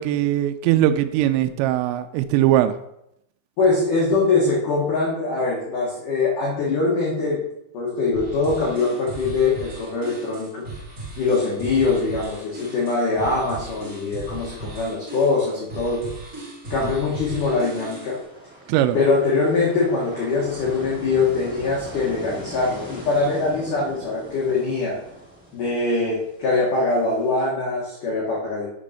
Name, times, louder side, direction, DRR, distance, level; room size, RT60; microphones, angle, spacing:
voice 1, 0.0-2.7 18.7-19.0, right 12 dB, 85° right, 8 dB, 2.6 m, -20 dB
voice 2, 3.6-7.4 7.7-10.6 11.2-16.1 16.7-18.2 18.9-25.0 25.5-28.7, left 3 dB, 75° left, -4 dB, 1.8 m, -22 dB
sound 1, 8.1-18.2, right 2 dB, 35° right, 1.3 m, -37 dB
sound 2, 17.4-27.3, right 1 dB, 5° right, 1.8 m, -40 dB
7.0 x 5.2 x 5.6 m, 0.79 s
omnidirectional pair, 5.8 m